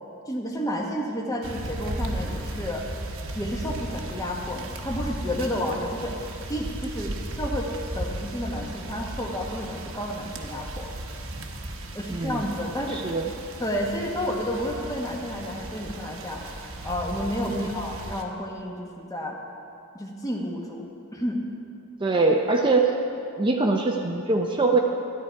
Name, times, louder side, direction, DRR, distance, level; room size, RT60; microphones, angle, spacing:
voice 1, 0.3-2.8 3.3-6.2 6.5-10.9 11.9-13.1 13.6-19.4 19.9-21.4, equal, 15° left, 0 dB, 1.2 m, -31 dB
sound 1, 1.4-18.2, right 1 dB, 60° right, 1.1 m, -36 dB
voice 2, 12.1-12.5 12.9-13.3 17.5-17.8 22.0-22.9 23.4-24.8, right 3 dB, 20° right, 1 dB, 0.6 m, -23 dB
13.5 x 11.0 x 4.6 m, 2.7 s
head